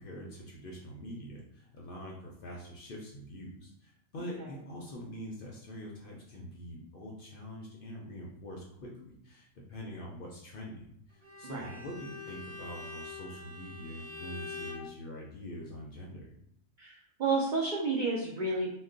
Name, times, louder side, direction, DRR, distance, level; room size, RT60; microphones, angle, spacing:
voice 1, 0.0-16.3, equal, 60° left, -2 dB, 0.6 m, -44 dB
Bowed string instrument, 11.2-14.9, left 3 dB, 45° right, 0.9 m, -44 dB
voice 2, 11.4-11.8 16.8-18.7, right 3 dB, 75° right, -3 dB, 0.4 m, -31 dB
2.3 x 2.2 x 3.7 m, 0.71 s
omnidirectional pair, 1.3 m